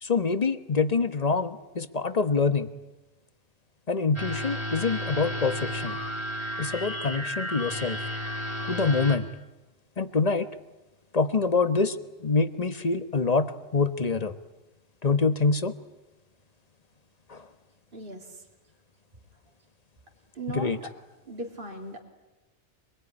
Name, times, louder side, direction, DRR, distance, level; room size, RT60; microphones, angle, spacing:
voice 1, 0.0-2.7 3.9-6.0 6.6-8.0 8.6-9.3 10.0-10.5 11.1-14.3 15.0-15.7 17.3-17.5 20.5-20.8, left 4 dB, 35° left, 11 dB, 1.2 m, -25 dB
sound 1, 4.1-9.2, equal, 25° right, 4.0 m, -33 dB
voice 2, 17.9-18.3 20.3-20.7 21.3-22.0, right 1 dB, 50° right, 1 dB, 3.1 m, -37 dB
25.5 x 21.0 x 9.9 m, 1.0 s
omnidirectional pair, 1.2 m